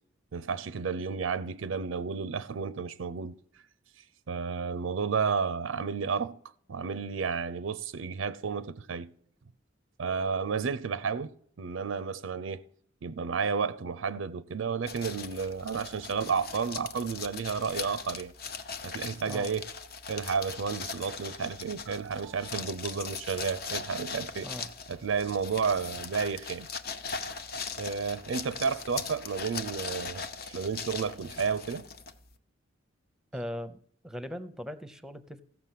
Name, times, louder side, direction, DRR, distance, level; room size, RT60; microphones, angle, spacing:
voice 1, 0.3-3.4 4.3-6.4 6.7-9.1 10.0-11.3 11.6-12.6 13.0-18.3 18.8-19.6 20.1-24.5 24.9-26.7 27.2-27.4 27.8-31.9, right 5 dB, 80° right, 0.5 m, -32 dB
sound 1, 14.9-32.4, left 5 dB, 50° left, 0.8 m, -40 dB
voice 2, 33.3-33.8 34.0-35.4, equal, 5° right, 0.7 m, -39 dB
15.0 x 6.0 x 7.5 m
head